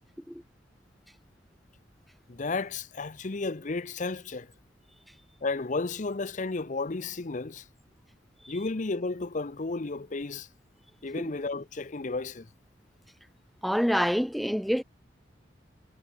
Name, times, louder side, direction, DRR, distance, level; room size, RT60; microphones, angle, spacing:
voice 1, 2.3-4.5 5.4-7.6 8.5-10.5 11.0-12.5, left 3 dB, 45° left, 0.7 m, -33 dB
voice 2, 13.6-14.8, equal, ahead, 0.4 m, -27 dB
head